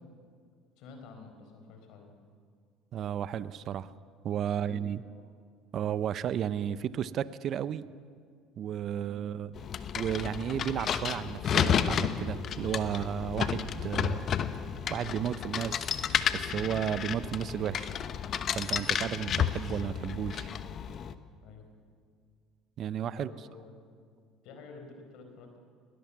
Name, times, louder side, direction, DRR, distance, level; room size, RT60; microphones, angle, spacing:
voice 1, 0.8-2.1 4.5-5.2 9.0-9.2 15.2-15.4 21.4-21.6 23.2-23.8 24.4-25.6, left 4 dB, 70° left, 4 dB, 4.4 m, -50 dB
voice 2, 2.9-3.9 4.2-5.0 5.7-7.9 8.6-9.5 9.9-14.3 14.9-15.9 16.3-17.9 18.5-20.5 22.8-23.3, right 9 dB, 50° right, 16 dB, 0.7 m, -33 dB
sound 1, 9.6-21.1, left 8 dB, 45° left, 1.0 m, -32 dB
20.0 x 18.0 x 7.2 m, 2.1 s
supercardioid pair, 90°, 0 cm